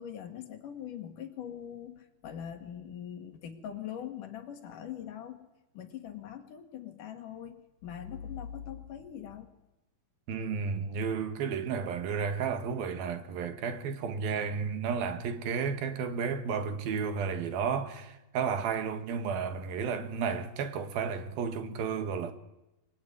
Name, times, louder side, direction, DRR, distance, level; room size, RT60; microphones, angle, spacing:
voice 1, 0.0-5.4 5.7-9.5, left 9 dB, 65° left, 3.3 m, -42 dB
voice 2, 10.3-22.3, right 6 dB, 80° right, 3.4 m, -32 dB
24.0 x 23.5 x 9.6 m
omnidirectional pair, 4.2 m